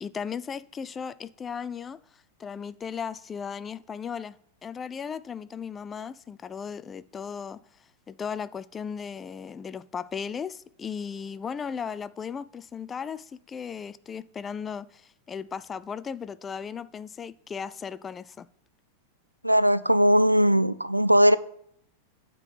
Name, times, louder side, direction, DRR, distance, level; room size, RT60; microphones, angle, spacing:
voice 1, 0.0-2.0 2.4-4.4 4.6-7.6 8.1-18.5, left 6 dB, 20° left, 0.3 m, -36 dB
voice 2, 19.4-21.4, equal, 90° right, 0.3 m, -19 dB
8.9 x 3.8 x 7.0 m
figure-of-eight pair, 90°, 0 cm